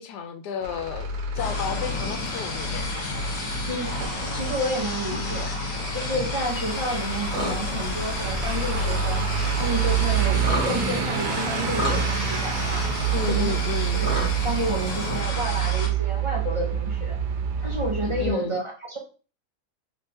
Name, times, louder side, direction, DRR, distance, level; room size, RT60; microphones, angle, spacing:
voice 1, 0.0-2.9 5.2-5.4 13.1-14.0 18.2-18.6, left 6 dB, 90° left, 1.2 m, -32 dB
Truck / Idling, 0.6-18.3, right 6 dB, 90° right, 1.2 m, -28 dB
sound 1, 1.4-15.9, left 3 dB, 60° left, 1.2 m, -32 dB
voice 2, 3.7-5.5 5.9-9.3 9.6-12.9 13.3-13.5 13.9-14.1 14.4-17.2 17.6-19.0, right 1 dB, 30° right, 0.6 m, -30 dB
sound 2, 6.4-15.2, equal, 5° left, 1.1 m, -35 dB
3.4 x 3.2 x 2.7 m
omnidirectional pair, 1.7 m